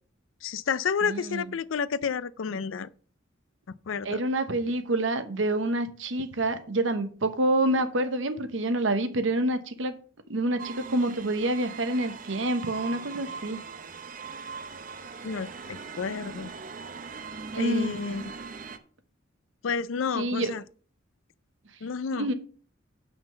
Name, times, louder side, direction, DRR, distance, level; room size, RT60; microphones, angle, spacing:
voice 1, 0.4-2.9 3.9-4.2 15.2-16.5 17.6-18.2 19.6-20.6 21.8-22.3, left 6 dB, 85° left, 0.5 m, -30 dB
voice 2, 1.0-1.5 4.0-10.0 10.3-13.6 17.5-17.9 20.1-20.5 22.1-22.3, right 1 dB, 75° right, 1.0 m, -27 dB
sound 1, 10.6-18.8, right 5 dB, 45° right, 0.7 m, -40 dB
5.9 x 5.6 x 6.8 m
head